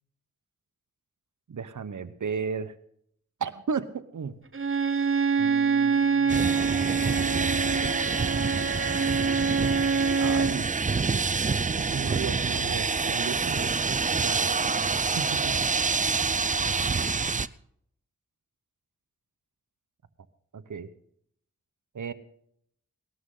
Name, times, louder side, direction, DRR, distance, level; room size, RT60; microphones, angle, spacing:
voice 1, 1.5-2.7 3.4-4.3 5.4-8.0 10.2-10.7 11.8-14.5 15.1-15.6 20.5-20.9 21.9-22.1, right 6 dB, 75° right, 12 dB, 1.1 m, -35 dB
Bowed string instrument, 4.5-10.6, right 5 dB, 45° right, 1.2 m, -25 dB
sound 1, 6.3-17.5, right 4 dB, 25° right, 0.5 m, -27 dB
19.0 x 13.0 x 3.9 m, 0.69 s
cardioid pair, 50°, 30 cm